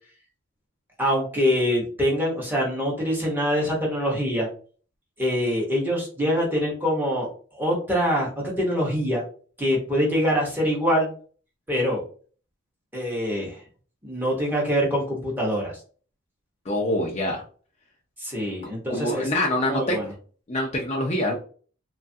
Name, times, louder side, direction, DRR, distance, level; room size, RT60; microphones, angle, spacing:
voice 1, 1.0-4.5 5.2-7.3 7.6-9.2 9.6-11.1 11.7-12.0 12.9-13.6 14.0-15.8 18.2-19.3 19.7-20.0, equal, 10° right, -3 dB, 0.8 m, -24 dB
voice 2, 16.7-17.4 18.9-20.1 20.5-21.4, left 1 dB, 30° left, -1 dB, 0.4 m, -25 dB
3.0 x 2.3 x 2.6 m, 0.42 s
head